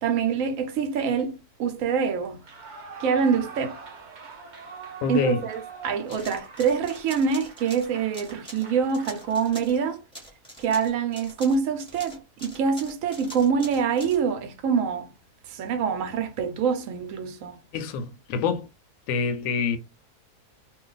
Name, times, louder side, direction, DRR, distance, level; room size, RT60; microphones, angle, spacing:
voice 1, 0.0-2.4 3.0-3.8 5.1-10.0 10.6-15.1 15.5-17.6, right 6 dB, 65° right, 1.0 m, -25 dB
Clapping / Cheering / Applause, 2.3-9.8, right 5 dB, 50° right, 0.6 m, -44 dB
voice 2, 5.0-5.4 17.7-18.7 19.1-19.8, left 6 dB, 70° left, 0.9 m, -26 dB
sound 1, 6.1-9.8 10.1-14.2, equal, 5° left, 1.1 m, -44 dB
2.6 x 2.3 x 3.9 m
omnidirectional pair, 1.7 m